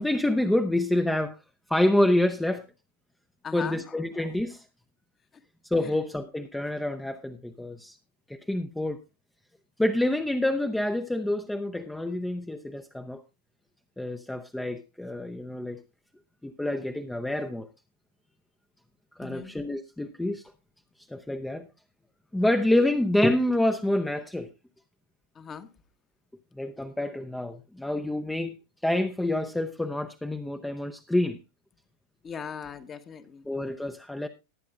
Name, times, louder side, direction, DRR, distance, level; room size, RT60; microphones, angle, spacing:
voice 1, 0.0-1.3 1.7-2.6 3.5-4.6 5.7-8.0 8.3-9.0 9.8-13.2 14.0-15.8 16.4-17.7 19.2-20.5 21.1-21.7 22.3-24.5 26.6-28.6 28.8-31.4 33.5-34.3, left 1 dB, 5° left, 0.7 m, -27 dB
voice 2, 3.4-4.3 5.3-5.4 5.8-6.0 19.2-19.5 25.3-25.7 32.2-33.4, left 7 dB, 25° left, 1.1 m, -40 dB
19.0 x 9.4 x 2.4 m
figure-of-eight pair, 90°, 0 cm